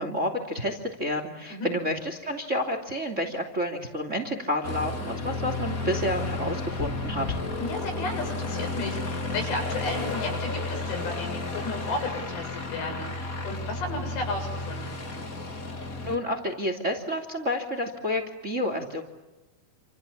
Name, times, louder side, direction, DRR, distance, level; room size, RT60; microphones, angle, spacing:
voice 1, 0.0-7.3 16.0-19.0, left 1 dB, 20° right, 7 dB, 2.5 m, -29 dB
Aircraft, 4.6-16.2, left 3 dB, 25° left, 2.2 m, -32 dB
voice 2, 7.6-14.9, left 2 dB, 90° left, 4 dB, 9.7 m, -33 dB
29.0 x 28.0 x 7.3 m, 1.0 s
omnidirectional pair, 4.8 m